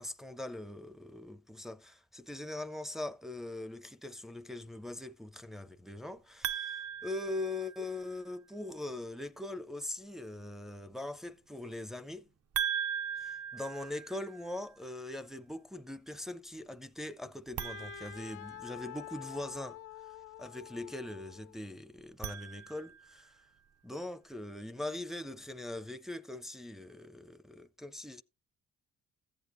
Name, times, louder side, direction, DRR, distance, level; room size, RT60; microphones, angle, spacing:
voice 1, 0.0-12.3 13.1-23.3 23.8-28.2, left 2 dB, ahead, 0.5 m, -41 dB
sound 1, 6.4-8.1 12.5-14.6 17.5-19.1 22.0-23.2, right 8 dB, 55° right, 0.7 m, -39 dB
Wind instrument woodwind instrument, 17.6-21.6, left 15 dB, 90° left, 0.6 m, -48 dB
14.0 x 8.3 x 2.5 m
cardioid pair, 90°, 30 cm